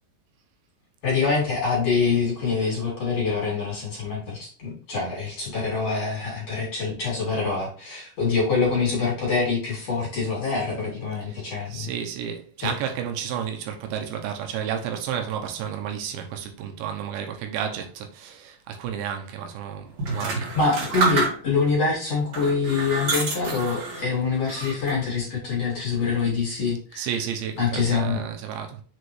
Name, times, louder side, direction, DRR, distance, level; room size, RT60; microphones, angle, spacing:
voice 1, 1.0-11.9 12.6-12.7 20.5-27.1 27.6-28.2, left 4 dB, 40° left, 3.2 m, -25 dB
voice 2, 11.7-20.6 26.9-28.8, right 8 dB, 80° right, 3.2 m, -32 dB
sound 1, 20.0-21.7 22.3-24.1 24.5-25.1, right 3 dB, 50° right, 2.6 m, -28 dB
6.9 x 5.0 x 3.1 m
omnidirectional pair, 5.2 m